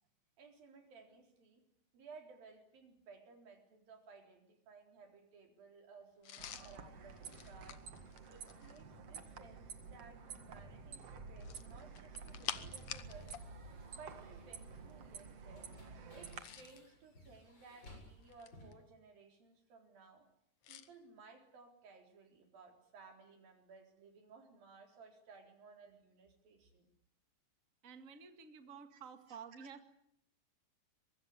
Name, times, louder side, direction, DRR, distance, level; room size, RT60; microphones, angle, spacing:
voice 1, 0.4-1.6 1.9-7.8 8.3-13.4 13.9-15.7 16.1-20.3 20.7-26.9 28.9-29.0 29.3-29.7, right 4 dB, 90° right, 4 dB, 5.8 m, -59 dB
sound 1, 6.2-8.9 11.3-13.5 13.7-13.9 16.1-16.9 17.6-18.7 20.6-20.9, left 10 dB, 60° left, 2.1 m, -48 dB
sound 2, 6.4-16.4, right 5 dB, 50° right, 2.7 m, -51 dB
sound 3, 12.8-18.7, left 1 dB, 30° left, 8.2 m, -62 dB
voice 2, 27.8-29.9, right 6 dB, 30° right, 8 dB, 1.8 m, -52 dB
24.0 x 22.0 x 9.7 m, 0.71 s
omnidirectional pair, 4.0 m